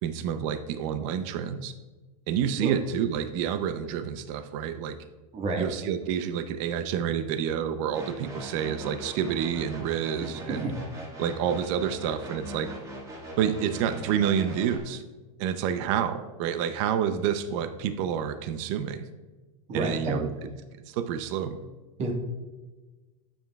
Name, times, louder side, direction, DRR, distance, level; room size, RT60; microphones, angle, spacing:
voice 1, 0.0-1.7 2.3-5.0 5.6-10.7 11.2-12.8 13.4-15.0 15.4-19.1 19.7-20.3 20.9-21.6, right 8 dB, 55° right, 10 dB, 0.6 m, -28 dB
voice 2, 5.3-5.6 10.5-10.7 19.7-20.2 22.0-22.1, right 2 dB, 35° right, 2 dB, 1.5 m, -29 dB
sound 1, 7.9-14.8, right 1 dB, 20° right, 1.6 m, -41 dB
10.0 x 7.8 x 2.3 m, 1.3 s
supercardioid pair, 135°, 19 cm